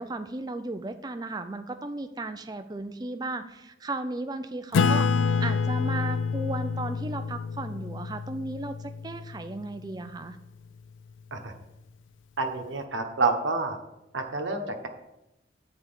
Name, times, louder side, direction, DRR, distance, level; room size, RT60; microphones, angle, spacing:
voice 1, 0.0-10.4, right 2 dB, 20° right, 9 dB, 0.4 m, -35 dB
Acoustic guitar / Strum, 4.7-9.7, left 5 dB, 85° left, 0.3 m, -27 dB
voice 2, 12.4-13.8 14.1-14.9, right 3 dB, 85° right, 3 dB, 1.0 m, -28 dB
7.7 x 4.6 x 6.7 m, 0.90 s
head